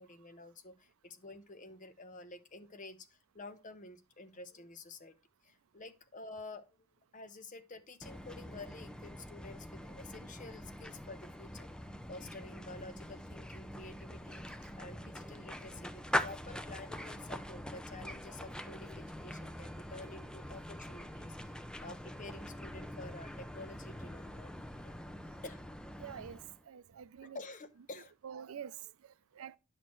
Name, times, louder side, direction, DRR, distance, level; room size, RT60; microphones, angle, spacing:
voice 1, 0.0-5.2 5.4-6.6 7.1-11.7 12.1-24.9 25.4-25.6 27.3-28.1, left 3 dB, 40° left, 1.0 m, -50 dB
sound 1, 8.0-26.6, left 1 dB, 5° left, 0.5 m, -43 dB
voice 2, 26.0-26.4 26.7-27.4 28.2-29.6, right 8 dB, 75° right, 0.4 m, -47 dB
10.0 x 6.4 x 3.1 m
head